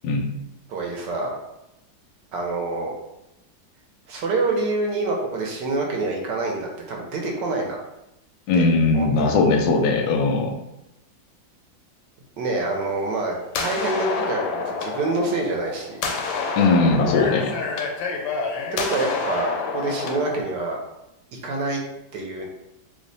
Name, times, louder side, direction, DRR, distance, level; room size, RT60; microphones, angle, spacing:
voice 1, 0.7-1.4 2.3-2.9 4.1-7.8 8.5-8.7 8.9-9.4 12.4-13.3 13.6-16.1 18.7-20.8 21.3-21.8 22.1-22.5, right 3 dB, 75° right, 0 dB, 1.2 m, -26 dB
voice 2, 8.5-10.6 16.6-17.5, left 3 dB, 70° left, 3 dB, 1.0 m, -19 dB
sound 1, 12.6-20.4, left 4 dB, 85° left, 1.3 m, -28 dB
3.1 x 2.1 x 3.9 m, 0.89 s
omnidirectional pair, 2.0 m